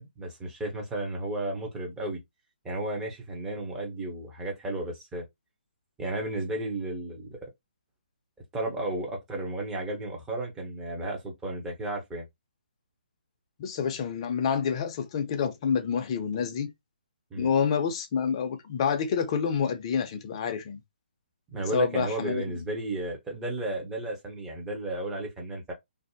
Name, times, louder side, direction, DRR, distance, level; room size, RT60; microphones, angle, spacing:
voice 1, 0.0-2.2 2.6-5.2 6.0-7.4 8.5-12.3 17.3-17.5 21.5-25.7, right 2 dB, 10° right, 0.6 m, -33 dB
voice 2, 13.6-16.7 17.4-20.8 21.7-22.6, left 7 dB, 30° left, 0.5 m, -28 dB
2.6 x 2.0 x 2.7 m
figure-of-eight pair, 140°, 6 cm